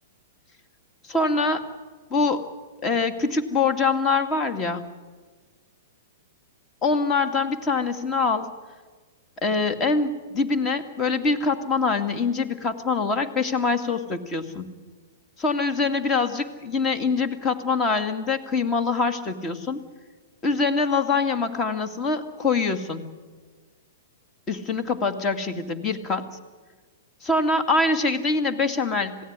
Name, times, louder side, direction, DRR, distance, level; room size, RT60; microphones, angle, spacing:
voice 1, 1.1-1.7 2.1-2.5 2.8-4.8 6.8-8.5 9.4-14.7 15.4-19.8 20.4-23.0 24.5-26.3 27.2-29.2, left 4 dB, 25° left, 8 dB, 2.4 m, -24 dB
26.5 x 17.5 x 9.9 m, 1.4 s
hypercardioid pair, 115°, 0 cm